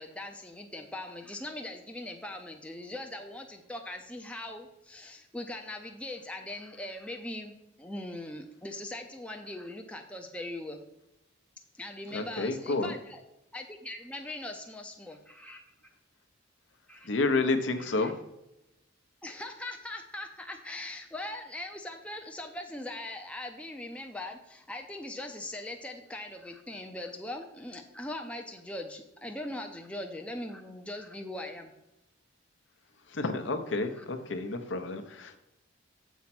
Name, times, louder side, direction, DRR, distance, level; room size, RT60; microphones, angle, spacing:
voice 1, 0.0-10.8 11.7-13.2 13.5-15.6 16.9-17.1 17.8-18.1 19.2-31.7 33.8-34.1, left 1 dB, 5° left, 3 dB, 0.5 m, -41 dB
voice 2, 12.1-12.9 17.1-18.1 33.1-35.4, left 3 dB, 60° left, 8 dB, 0.8 m, -30 dB
7.2 x 4.3 x 5.9 m, 0.88 s
head